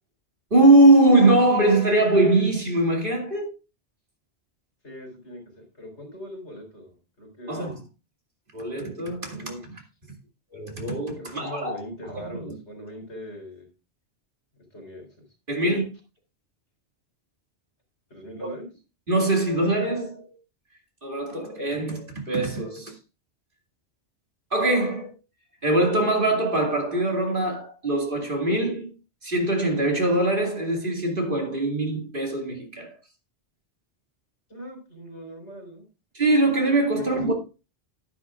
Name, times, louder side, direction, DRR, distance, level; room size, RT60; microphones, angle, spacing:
voice 1, 0.5-3.5 7.5-7.8 8.5-9.4 10.5-11.8 12.1-12.5 15.5-15.9 19.1-20.4 21.0-22.9 24.5-25.1 25.6-28.9 29.2-33.0 36.1-37.3, right 2 dB, 50° right, 2.7 m, -22 dB
voice 2, 4.8-7.8 9.3-9.7 11.2-13.7 14.7-15.1 18.1-18.7 34.5-35.8 36.9-37.3, equal, 75° left, 4.1 m, -40 dB
10.5 x 10.5 x 2.5 m
omnidirectional pair, 1.2 m